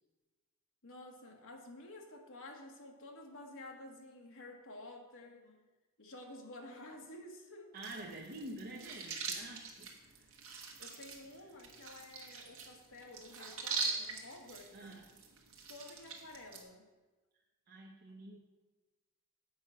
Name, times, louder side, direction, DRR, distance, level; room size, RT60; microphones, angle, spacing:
voice 1, 0.8-5.6 6.0-7.7 10.8-14.7 15.7-16.9, left 2 dB, 60° left, 2 dB, 1.4 m, -51 dB
voice 2, 7.7-10.1 14.7-15.2 17.7-18.4, right 1 dB, 45° right, -1 dB, 0.8 m, -48 dB
sound 1, 7.8-16.6, right 4 dB, 65° right, 1.3 m, -43 dB
7.7 x 5.3 x 5.6 m, 1.2 s
head